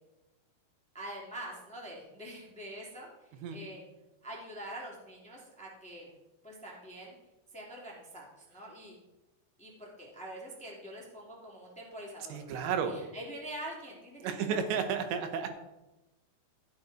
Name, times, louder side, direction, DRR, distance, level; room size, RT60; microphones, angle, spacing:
voice 1, 0.9-3.8 4.2-6.1 6.4-7.2 7.5-9.0 9.6-12.6 12.8-14.8, right 1 dB, 5° left, -3 dB, 1.4 m, -45 dB
voice 2, 12.3-13.0 14.2-15.5, right 7 dB, 75° right, 7 dB, 3.3 m, -32 dB
14.5 x 8.6 x 4.3 m, 1.0 s
omnidirectional pair, 5.5 m